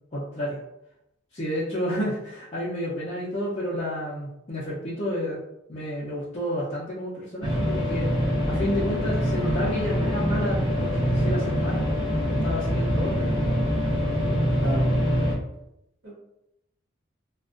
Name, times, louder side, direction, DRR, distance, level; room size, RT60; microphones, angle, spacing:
voice 1, 0.1-0.6 1.3-5.4 5.7-8.1 8.5-11.9 12.4-13.6, equal, 30° left, -10 dB, 0.5 m, -30 dB
sound 1, 7.4-15.3, equal, 20° right, 0.5 m, -24 dB
voice 2, 12.8-13.1 14.6-14.8 16.0-16.2, equal, 70° right, -6 dB, 1.1 m, -33 dB
2.4 x 2.2 x 2.4 m, 0.84 s
head